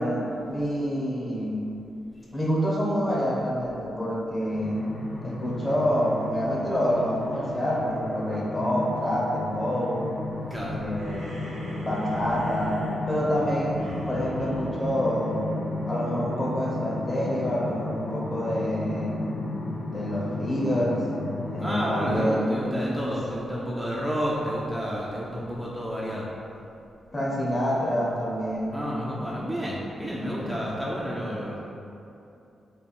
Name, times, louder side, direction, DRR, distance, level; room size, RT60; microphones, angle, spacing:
voice 1, 0.0-1.6 2.3-4.9 5.2-10.1 10.6-11.4 11.8-15.5 15.9-19.2 19.9-21.1 21.5-23.1 27.1-28.8, equal, 30° left, -5 dB, 1.0 m, -27 dB
sound 1, 4.5-22.2, left 2 dB, 90° left, 0.6 m, -34 dB
sound 2, 10.9-15.7, right 1 dB, 75° right, 0.9 m, -43 dB
voice 2, 21.6-26.3 28.7-31.6, equal, 5° right, -6 dB, 0.5 m, -30 dB
3.4 x 2.3 x 4.2 m, 2.7 s
supercardioid pair, 55°, 0 cm